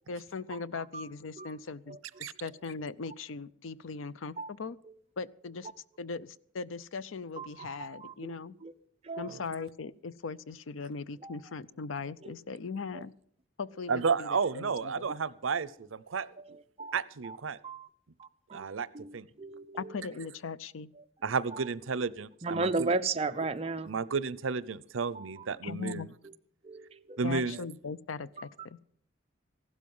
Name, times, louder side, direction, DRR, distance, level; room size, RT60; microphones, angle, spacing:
voice 1, 0.1-4.8 5.2-5.7 6.0-8.6 9.2-13.1 13.6-15.1 19.8-20.9 25.6-26.1 27.2-28.8, left 4 dB, 85° left, 18 dB, 0.6 m, -39 dB
voice 2, 7.4-8.3 8.6-8.7 9.1-9.3 11.2-11.3 12.2-12.3 12.9-13.0 16.8-16.9 17.2-17.4 17.6-17.9 18.2-18.7 18.9-19.8 22.4-23.9 25.1-25.3 26.6-27.2, right 3 dB, 30° right, 8 dB, 0.7 m, -35 dB
voice 3, 13.9-16.3 16.9-17.6 18.5-18.9 19.1-19.3 21.2-22.9 23.9-26.0 27.2-27.6, right 5 dB, 85° right, 19 dB, 0.6 m, -32 dB
15.5 x 12.5 x 5.4 m, 0.64 s
head